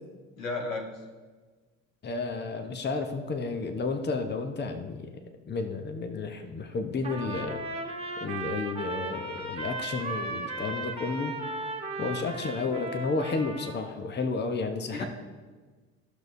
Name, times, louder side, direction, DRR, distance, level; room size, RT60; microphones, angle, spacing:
voice 1, 0.4-0.9 12.0-12.3 14.9-15.1, left 3 dB, 85° left, 1 dB, 1.4 m, -34 dB
voice 2, 2.0-5.1 5.5-7.6 8.2-11.3 12.0-15.1, left 4 dB, 25° left, 6 dB, 0.9 m, -32 dB
Trumpet, 7.0-13.8, right 2 dB, 15° right, 1.5 m, -36 dB
13.5 x 6.4 x 2.7 m, 1.4 s
hypercardioid pair, 60°, 39 cm